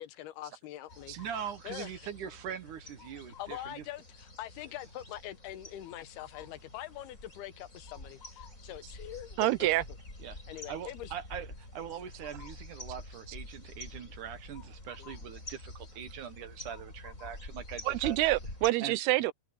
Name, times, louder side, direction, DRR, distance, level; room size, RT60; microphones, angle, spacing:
voice 1, 0.0-1.2 1.6-2.1 3.4-9.8 10.5-11.1 15.0-15.1, left 13 dB, 85° left, 3.0 m, -43 dB
sound 1, 0.9-18.7, left 2 dB, 20° left, 5.9 m, -48 dB
voice 2, 1.2-3.8 10.2-10.4 10.7-18.2 18.8-19.0, right 8 dB, 60° right, 2.5 m, -42 dB
voice 3, 9.4-9.8 17.9-19.3, right 16 dB, 85° right, 2.8 m, -27 dB
omnidirectional pair, 4.5 m